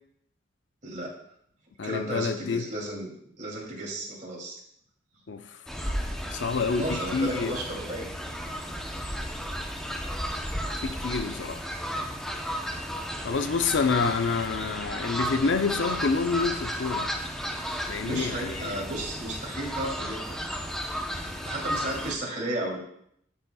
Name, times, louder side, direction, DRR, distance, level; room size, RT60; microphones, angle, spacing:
voice 1, 0.8-1.1 1.8-4.6 6.8-8.3 9.1-9.2 18.0-20.4 21.2-22.8, right 1 dB, 40° right, -3 dB, 2.8 m, -34 dB
voice 2, 1.8-2.6 5.3-5.4 6.3-7.5 10.8-11.6 13.2-17.1 17.9-18.7, left 4 dB, 75° left, 9 dB, 0.6 m, -27 dB
Fowl, 5.7-22.1, equal, 5° left, 0.8 m, -34 dB
13.0 x 6.9 x 2.3 m, 0.69 s
head